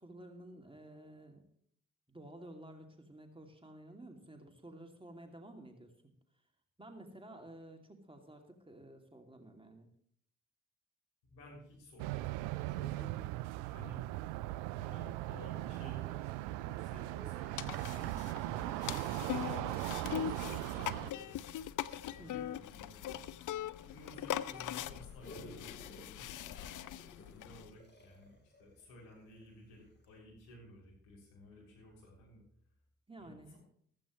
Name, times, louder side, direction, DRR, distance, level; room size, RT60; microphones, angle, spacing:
voice 1, 0.0-1.4 2.1-6.1 6.8-9.9 13.0-13.3 22.2-22.5 33.1-33.6, right 1 dB, 15° right, 3 dB, 2.6 m, -52 dB
voice 2, 11.2-13.1 13.6-14.0 14.6-21.5 22.1-23.2 23.9-26.7 27.3-32.4 33.2-33.6, left 1 dB, 70° left, -3 dB, 6.5 m, -55 dB
sound 1, 12.0-21.1, right 18 dB, 70° right, 0.5 m, -39 dB
sound 2, 17.6-27.7, left 11 dB, 50° left, 0.7 m, -41 dB
sound 3, 25.2-29.5 30.0-30.1, left 2 dB, 25° left, 3.8 m, -54 dB
15.0 x 14.0 x 3.2 m, 0.64 s
hypercardioid pair, 45°, 39 cm